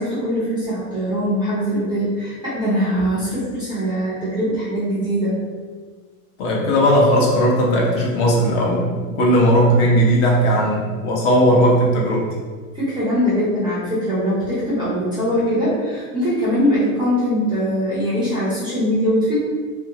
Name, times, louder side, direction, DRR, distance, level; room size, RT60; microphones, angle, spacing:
voice 1, 0.0-5.4 12.7-19.4, equal, 10° right, -10 dB, 0.5 m, -21 dB
voice 2, 6.4-12.3, equal, 50° left, -3 dB, 0.9 m, -17 dB
2.7 x 2.7 x 2.8 m, 1.5 s
supercardioid pair, 150°, 44 cm